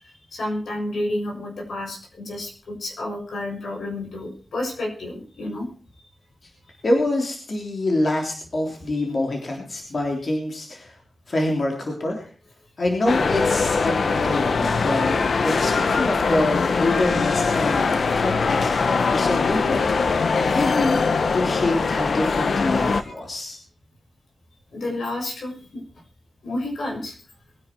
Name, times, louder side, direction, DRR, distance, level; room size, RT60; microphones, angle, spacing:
voice 1, 0.3-5.7 22.7-23.1 24.7-25.8 26.4-27.2, left 1 dB, 85° left, -1 dB, 6.6 m, -30 dB
voice 2, 6.8-11.0 11.3-12.3 12.8-21.0 21.3-23.6, left 2 dB, 50° left, 1 dB, 3.4 m, -26 dB
sound 1, 13.1-23.0, left 4 dB, 65° left, 1.0 m, -22 dB
21.5 x 10.0 x 4.6 m, 0.41 s
wide cardioid pair, 100°, 0 cm